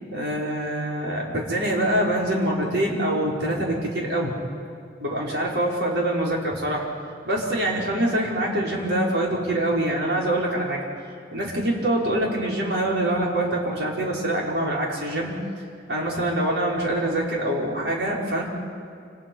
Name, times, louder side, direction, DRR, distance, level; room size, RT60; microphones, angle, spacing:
voice 1, 0.1-4.3 5.0-6.9 7.3-10.8 11.3-15.3 15.9-18.4, right 1 dB, 70° right, -3 dB, 5.6 m, -25 dB
29.0 x 28.0 x 5.7 m, 2.3 s
head